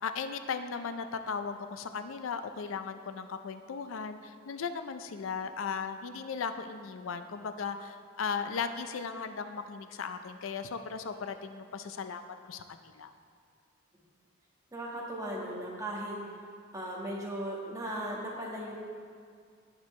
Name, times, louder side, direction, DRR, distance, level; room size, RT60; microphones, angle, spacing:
voice 1, 0.0-13.1, left 5 dB, 80° left, 9 dB, 0.5 m, -37 dB
voice 2, 14.7-16.2 16.7-18.7, right 1 dB, 15° right, -4 dB, 1.6 m, -37 dB
16.0 x 6.1 x 3.2 m, 2.2 s
head